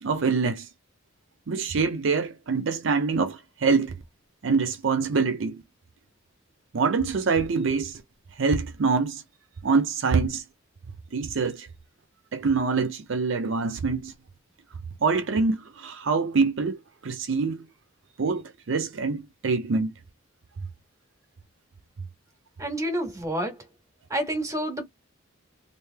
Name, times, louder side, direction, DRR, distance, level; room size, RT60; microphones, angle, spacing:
voice 1, 0.0-0.7 1.5-4.0 4.4-5.6 6.7-8.0 8.4-9.2 9.6-10.4 11.1-11.7 12.3-14.1 15.0-17.6 18.2-19.9, right 4 dB, 65° right, 0.5 m, -25 dB
voice 2, 22.6-23.7 24.1-24.8, right 1 dB, 15° right, 1.5 m, -29 dB
3.2 x 2.6 x 3.3 m
head